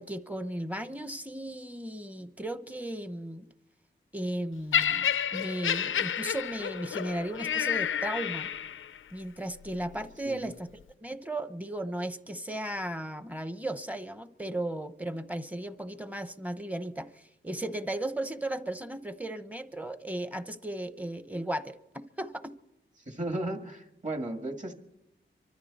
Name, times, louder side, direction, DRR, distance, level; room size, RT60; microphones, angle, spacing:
voice 1, 0.0-3.5 4.1-8.5 9.1-10.7 11.0-22.5, right 1 dB, 10° right, 11 dB, 0.9 m, -36 dB
Laughter, 4.7-9.0 9.8-9.9, left 9 dB, 80° left, 0.5 m, -30 dB
voice 2, 23.1-24.7, right 1 dB, 35° right, 4 dB, 2.1 m, -35 dB
25.0 x 13.5 x 4.2 m, 0.86 s
wide cardioid pair, 130°, 20 cm